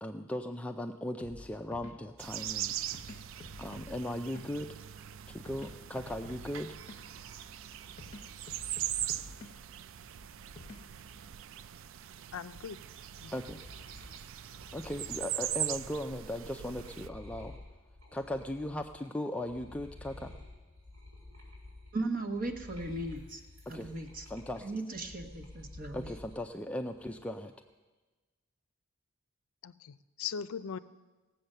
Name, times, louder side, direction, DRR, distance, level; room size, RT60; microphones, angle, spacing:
voice 1, 0.0-2.7 3.6-4.7 5.3-6.8 13.3-13.6 14.7-17.6 18.1-20.3 23.7-23.9 24.3-24.8 25.9-27.5, left 1 dB, 5° left, 4 dB, 0.3 m, -38 dB
sound 1, 1.2-11.3, left 1 dB, 35° left, 1.0 m, -52 dB
sound 2, 2.2-17.1, right 11 dB, 65° right, 0.4 m, -41 dB
voice 2, 12.3-12.8 13.2-13.3 29.6-30.8, left 7 dB, 80° left, 14 dB, 0.5 m, -39 dB
sound 3, 12.8-19.1 19.4-26.4 26.8-27.5, left 2 dB, 80° right, 4.6 m, -51 dB
voice 3, 21.9-23.4 23.7-24.2 24.6-26.2, right 2 dB, 40° right, 4 dB, 1.1 m, -37 dB
17.5 x 7.8 x 6.6 m, 1.2 s
head